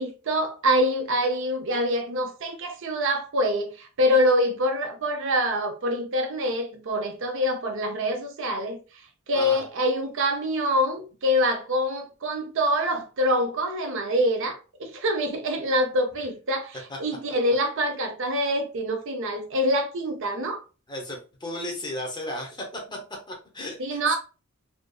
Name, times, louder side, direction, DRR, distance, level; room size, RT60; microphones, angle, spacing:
voice 1, 0.0-8.8 9.3-20.6 23.8-24.2, equal, 60° right, 0.5 m, -25 dB
voice 2, 9.3-9.6 16.2-16.3 16.9-17.0 20.9-22.8 23.3-24.2, left 1 dB, 20° left, 0.6 m, -35 dB
2.5 x 2.3 x 2.2 m
head